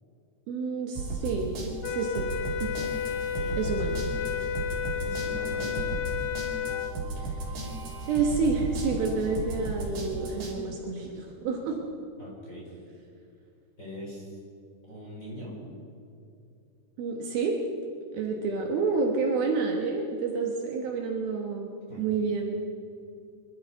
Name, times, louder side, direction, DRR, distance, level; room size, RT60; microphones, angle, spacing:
voice 1, 0.5-1.5 1.8-2.3 2.6-2.9 3.6-4.0 7.2-7.5 8.1-11.8 17.0-17.6 18.1-21.7 22.0-22.6, right 4 dB, 70° right, 1 dB, 2.8 m, -29 dB
sound 1, 1.0-10.6, right 2 dB, 50° right, 3.9 m, -35 dB
sound 2, 1.8-7.0, left 8 dB, 85° left, 2.7 m, -32 dB
voice 2, 3.1-3.6 4.9-5.8 12.2-12.7 13.8-14.4 14.9-15.6 21.9-22.0, equal, 20° left, -5 dB, 3.8 m, -42 dB
25.0 x 13.0 x 4.0 m, 2.5 s
omnidirectional pair, 4.9 m